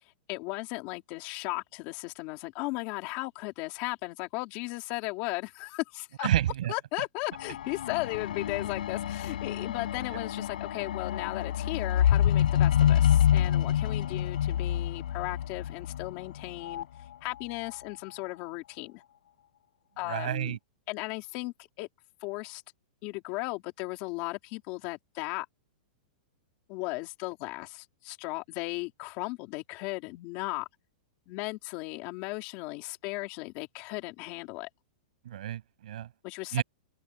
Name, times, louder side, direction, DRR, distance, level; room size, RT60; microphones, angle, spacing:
voice 1, 0.3-6.3 6.7-16.9 17.2-19.0 20.0-20.6 20.9-21.9 22.2-22.6 23.0-25.5 26.7-30.7 31.3-34.7 36.2-36.6, left 23 dB, 30° left, 3.6 m, -36 dB
voice 2, 6.2-6.7 10.1-10.2 20.1-20.6 35.3-36.1 36.5-36.6, right 12 dB, 60° right, 7.6 m, -29 dB
sound 1, 7.3-16.8 17.6-17.8, left 10 dB, 75° left, 7.1 m, -27 dB
open air
supercardioid pair, 175°, 5 cm